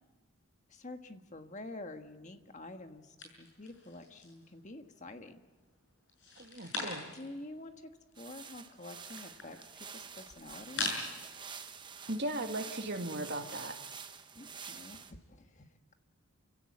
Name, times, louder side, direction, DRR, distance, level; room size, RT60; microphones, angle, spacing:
voice 1, 0.7-5.4 7.1-7.9 8.2-11.0 14.3-15.9, left 2 dB, 35° left, 6 dB, 1.5 m, -48 dB
sound 1, 3.2-4.5 4.9-5.6 6.1-7.4 7.7-7.8 8.0-11.3, left 3 dB, 55° left, 6.4 m, -42 dB
voice 2, 6.4-7.1 12.1-13.7, right 1 dB, 50° right, 4 dB, 2.2 m, -37 dB
sound 2, 8.1-15.1, right 6 dB, 20° right, 1.0 m, -48 dB
28.5 x 16.5 x 8.5 m, 1.3 s
head